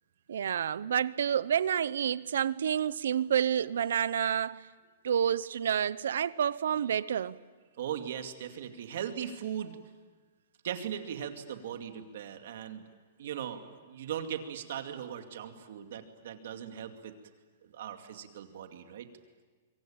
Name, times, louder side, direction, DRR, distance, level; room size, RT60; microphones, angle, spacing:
voice 1, 0.3-4.7 5.0-7.4, right 8 dB, 80° right, 0.8 m, -29 dB
voice 2, 7.8-9.8 10.6-12.8 13.2-17.1 17.7-19.1, right 9 dB, 55° right, 2.4 m, -39 dB
26.0 x 24.0 x 8.8 m
hypercardioid pair, 180°, 0 cm